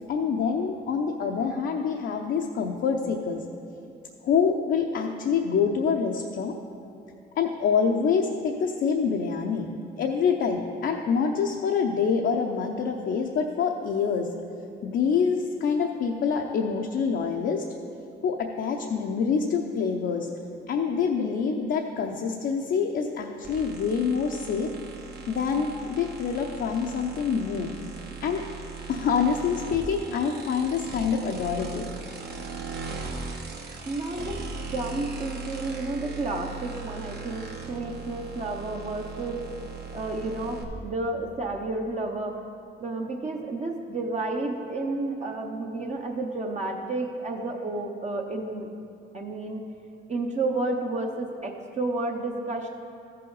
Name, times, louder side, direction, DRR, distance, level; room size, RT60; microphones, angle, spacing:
voice 1, 0.1-3.4 4.2-6.5 7.4-14.3 14.8-17.6 18.2-20.3 20.7-24.7 25.3-27.7 28.2-28.4 28.9-32.0, left 6 dB, 65° left, 1 dB, 0.7 m, -26 dB
sound 1, 23.4-40.6, right 4 dB, 55° right, 1.2 m, -39 dB
voice 2, 33.8-34.4 34.7-39.4 39.9-42.4 42.8-48.7 49.1-49.6 50.1-52.7, right 2 dB, 35° right, 1 dB, 0.9 m, -31 dB
14.0 x 5.6 x 4.0 m, 2.5 s
cardioid pair, 90°, 20 cm